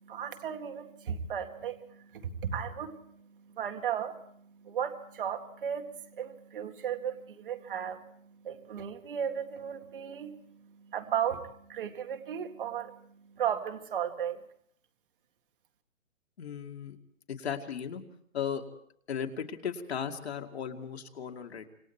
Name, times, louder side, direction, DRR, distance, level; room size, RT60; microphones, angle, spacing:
voice 1, 0.0-4.3 4.6-13.0 13.4-14.4, right 8 dB, 40° right, 6 dB, 2.1 m, -35 dB
voice 2, 16.4-17.0 17.3-18.0 18.3-18.7 19.1-21.7, left 7 dB, 55° left, 4 dB, 2.4 m, -36 dB
27.0 x 24.0 x 4.5 m, 0.65 s
hypercardioid pair, 165°, 39 cm